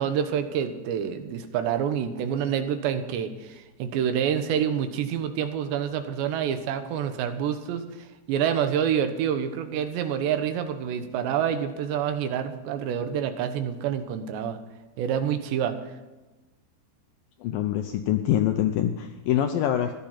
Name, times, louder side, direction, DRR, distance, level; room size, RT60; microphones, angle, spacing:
voice 1, 0.0-14.6 15.0-15.8, right 8 dB, 85° right, 8 dB, 3.5 m, -27 dB
voice 2, 17.4-20.0, left 11 dB, 85° left, 6 dB, 2.1 m, -25 dB
15.5 x 12.0 x 5.8 m, 1.1 s
omnidirectional pair, 4.9 m